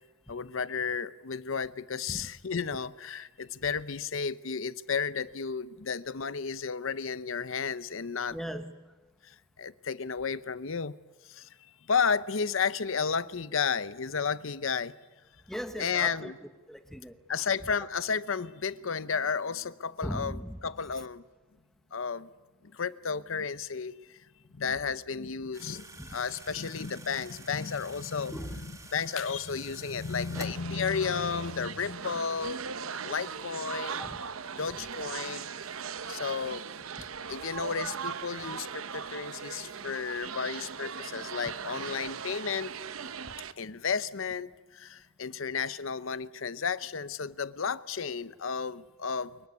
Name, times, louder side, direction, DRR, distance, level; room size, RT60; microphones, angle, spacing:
voice 1, 0.3-8.4 9.2-10.9 11.2-11.5 11.9-14.9 15.8-16.4 17.3-21.2 21.9-22.3 22.6-24.2 24.5-32.6 33.0-34.1 34.5-35.5 36.1-36.7 37.3-42.7 43.6-49.4, left 6 dB, 75° left, 0.8 m, -33 dB
voice 2, 8.3-8.7 15.5-16.3 16.7-17.2 20.0-20.6 26.0-26.1 28.3-28.6 34.0-34.2, equal, ahead, 1.1 m, -37 dB
sound 1, 25.5-30.5, right 2 dB, 15° right, 2.1 m, -48 dB
sound 2, 30.3-43.5, right 6 dB, 90° right, 0.9 m, -39 dB
25.0 x 22.5 x 9.6 m
head